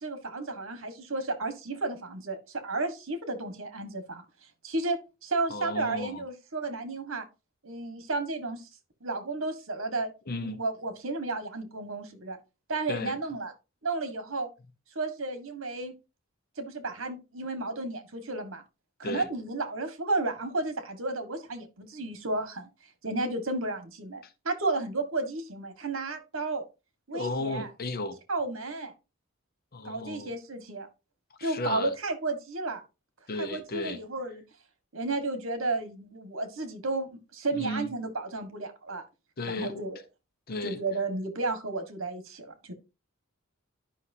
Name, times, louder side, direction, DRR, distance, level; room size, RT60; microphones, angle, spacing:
voice 1, 0.0-4.2 4.6-7.3 7.6-8.7 9.0-12.4 12.7-13.5 13.8-14.5 14.9-15.9 16.6-18.6 19.0-22.7 23.0-26.6 27.1-27.7 28.3-28.9 29.8-30.9 31.4-32.8 33.4-34.4 34.9-39.0 39.4-40.0 40.6-42.7, right 2 dB, 70° right, 1.6 m, -33 dB
voice 2, 5.5-6.2 10.3-10.6 12.9-13.2 19.0-19.3 27.1-28.2 29.7-30.3 31.4-31.9 33.3-34.0 37.5-37.9 39.4-39.8 40.5-40.8, left 2 dB, 45° left, 0.8 m, -34 dB
11.5 x 5.6 x 2.7 m
head